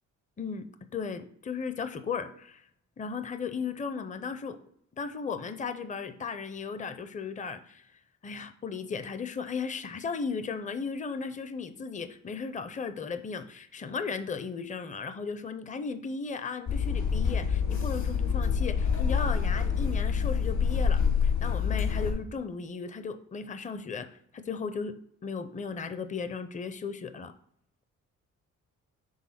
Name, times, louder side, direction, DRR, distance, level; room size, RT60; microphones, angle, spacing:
voice 1, 0.9-2.6 3.0-4.6 5.0-7.9 8.2-24.1 24.3-24.9 25.2-27.3, left 5 dB, 25° left, 10 dB, 0.5 m, -36 dB
sound 1, 16.7-22.1, left 6 dB, 65° left, 1.6 m, -27 dB
6.4 x 3.4 x 5.7 m, 0.69 s
cardioid pair, 85°, 31 cm